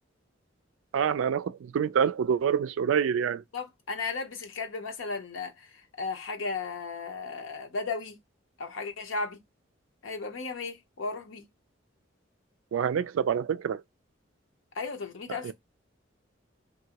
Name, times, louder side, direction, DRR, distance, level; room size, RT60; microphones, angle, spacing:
voice 1, 0.9-3.4 12.7-13.8 15.4-15.5, right 7 dB, 85° right, 0.3 m, -26 dB
voice 2, 3.5-5.7 6.0-8.2 8.6-9.4 10.0-11.5 14.7-15.5, left 4 dB, 80° left, 0.6 m, -35 dB
2.8 x 2.6 x 2.8 m
head